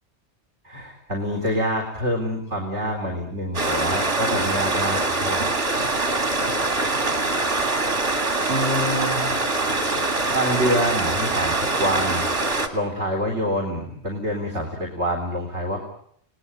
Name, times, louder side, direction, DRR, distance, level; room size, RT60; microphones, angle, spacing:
voice 1, 0.6-5.5 8.5-9.2 9.8-9.9 10.3-12.3 12.7-15.9, equal, 90° right, 2 dB, 4.3 m, -26 dB
Stream, 3.5-12.7, right 2 dB, 60° right, 3.2 m, -23 dB
29.0 x 19.5 x 8.9 m, 0.67 s
omnidirectional pair, 1.1 m